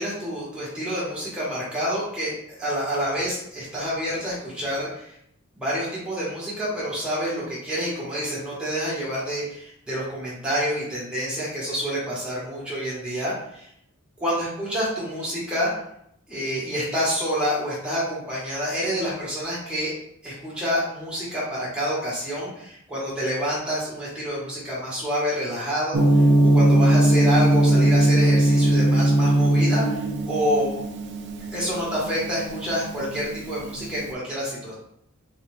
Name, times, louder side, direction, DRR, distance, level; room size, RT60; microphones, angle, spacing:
voice 1, 0.0-5.1 5.5-13.7 14.2-15.7 16.3-19.9 20.2-26.2 26.5-30.7 31.5-34.7, equal, 5° right, -8 dB, 1.5 m, -28 dB
Gong, 25.9-34.0, right 1 dB, 50° right, 0.5 m, -19 dB
3.9 x 2.7 x 3.6 m, 0.73 s
head